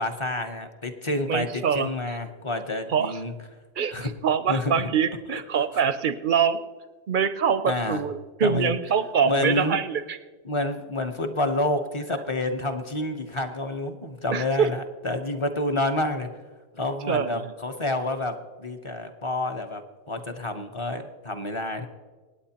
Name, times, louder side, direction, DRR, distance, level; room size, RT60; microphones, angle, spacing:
voice 1, 0.0-3.3 3.9-4.1 4.5-4.8 7.7-8.0 8.4-8.7 9.2-9.8 10.4-16.3 16.7-19.8 20.1-21.9, left 2 dB, 30° left, 6 dB, 0.8 m, -28 dB
voice 2, 1.3-2.2 2.9-3.2 3.8-6.6 7.1-10.2 14.3-14.7 17.1-17.5, right 7 dB, 55° right, 12 dB, 0.6 m, -25 dB
25.5 x 9.1 x 2.9 m, 1.4 s
omnidirectional pair, 1.2 m